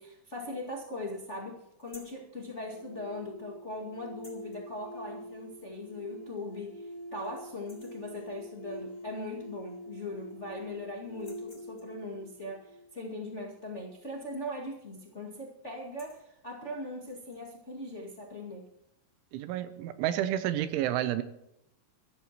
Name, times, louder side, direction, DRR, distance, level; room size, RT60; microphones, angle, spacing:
voice 1, 0.0-18.7, left 1 dB, 40° left, -3 dB, 0.9 m, -40 dB
sound 1, 1.8-2.2 4.1-4.6 6.0-6.1 6.5-6.6 7.0-7.3 7.5-8.1 9.4-9.5 9.8-10.5 11.1-12.0 14.4-14.7 15.0-15.2 15.7-16.3 16.9-17.4, left 2 dB, 15° left, 5.2 m, -57 dB
sound 2, 2.6-13.6, equal, 90° left, 4.1 m, -46 dB
voice 2, 19.3-21.2, right 12 dB, 85° right, 11 dB, 3.2 m, -30 dB
24.5 x 14.0 x 3.1 m, 0.82 s
omnidirectional pair, 5.4 m